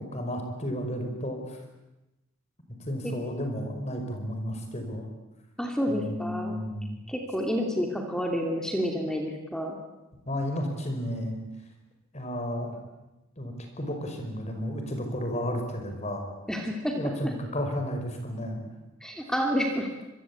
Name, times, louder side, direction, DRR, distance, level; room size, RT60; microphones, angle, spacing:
voice 1, 0.0-1.6 2.8-5.1 5.9-7.0 10.3-11.4 12.1-12.8 13.4-16.2 16.9-18.6, equal, 30° left, 4 dB, 5.3 m, -32 dB
voice 2, 5.6-6.6 7.1-9.8 16.5-17.3 19.0-19.9, equal, 5° left, 2 dB, 2.6 m, -29 dB
26.0 x 22.5 x 8.6 m, 0.99 s
head